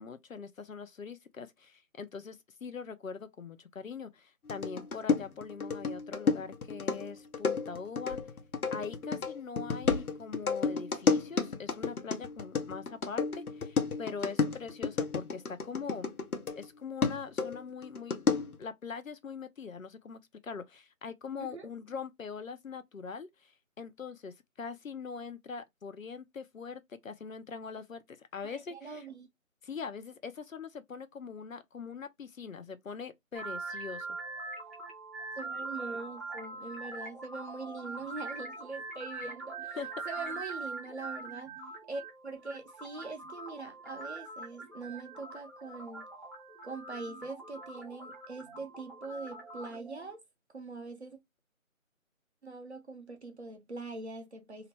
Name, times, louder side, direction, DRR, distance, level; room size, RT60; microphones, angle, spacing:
voice 1, 0.0-8.2 8.7-16.1 16.6-18.3 18.6-29.1 29.6-34.1 39.8-39.9, left 5 dB, 70° left, 0.6 m, -42 dB
sound 1, 4.5-16.7 17.0-18.6, left 5 dB, 90° left, 0.9 m, -31 dB
voice 2, 28.4-29.3 35.4-39.8 40.0-41.5 41.9-46.1 46.6-50.2 50.5-51.2 52.4-54.7, right 3 dB, 50° right, 0.8 m, -43 dB
sound 2, 33.3-50.1, right 3 dB, ahead, 0.5 m, -43 dB
2.8 x 2.1 x 3.1 m
figure-of-eight pair, 175°, 42 cm